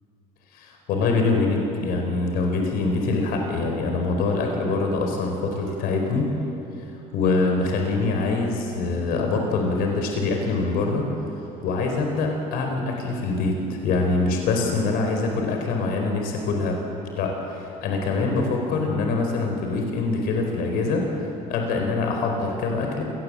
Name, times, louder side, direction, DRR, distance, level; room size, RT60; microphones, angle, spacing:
voice 1, 0.6-6.3 7.1-11.0 11.6-16.8 17.2-21.0 21.5-23.0, left 3 dB, 75° left, 2 dB, 4.4 m, -24 dB
27.5 x 19.5 x 7.7 m, 2.9 s
cardioid pair, 110°, 16 cm